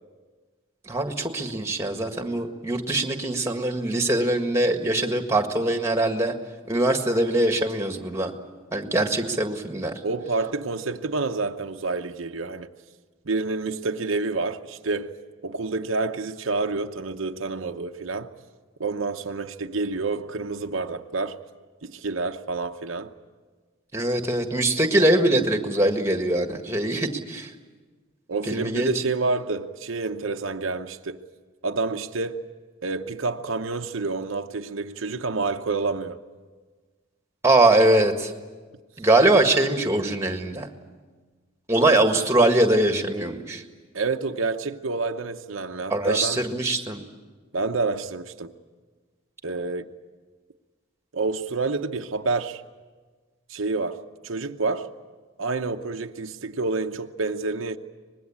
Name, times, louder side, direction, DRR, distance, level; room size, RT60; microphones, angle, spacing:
voice 1, 0.9-6.3 6.7-8.3 8.7-9.9 23.9-27.5 28.5-28.9 37.4-38.3 39.0-40.7 41.7-43.6 45.9-47.0, right 2 dB, 15° right, 1.7 m, -22 dB
voice 2, 10.0-12.7 13.2-15.1 15.4-18.3 18.8-21.4 21.8-23.1 28.3-31.2 31.6-32.4 32.8-36.2 43.9-46.4 47.5-48.5 49.4-49.9 51.1-52.6 53.5-54.9 55.4-57.8, right 3 dB, 75° right, 0.9 m, -28 dB
25.0 x 20.5 x 8.7 m
head